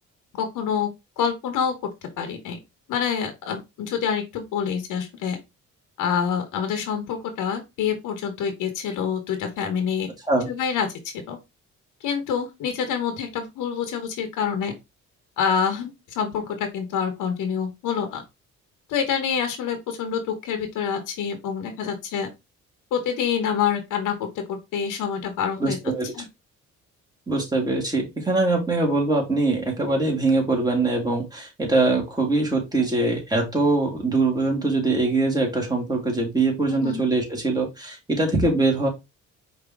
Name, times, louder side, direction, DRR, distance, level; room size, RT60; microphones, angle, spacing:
voice 1, 0.3-1.7 2.2-2.6 2.9-5.4 6.0-10.1 10.5-10.9 11.3-11.4 12.0-14.7 15.4-18.2 18.9-22.3 22.9-25.8 26.1-26.2 36.7-37.0, left 7 dB, 90° left, 1.1 m, -27 dB
voice 2, 25.6-26.1 27.3-38.9, right 2 dB, 15° right, 2.2 m, -22 dB
5.0 x 3.0 x 3.5 m
cardioid pair, 90°, 30 cm